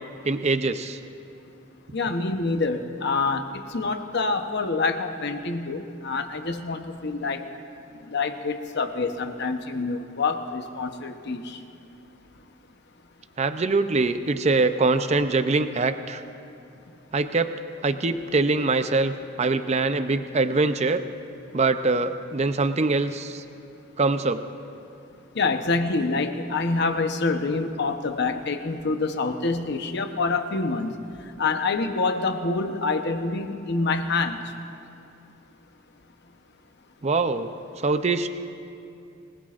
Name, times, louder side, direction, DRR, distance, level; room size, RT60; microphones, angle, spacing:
voice 1, 0.2-1.0 13.4-16.2 17.1-17.5 17.8-21.0 21.5-23.4 24.0-24.4 37.0-37.5 37.8-38.3, right 3 dB, 30° right, 10 dB, 0.6 m, -23 dB
voice 2, 1.9-7.5 8.0-11.6 25.3-30.9 31.4-34.4, left 3 dB, 55° left, 7 dB, 0.9 m, -26 dB
25.5 x 20.0 x 2.5 m, 2.6 s
head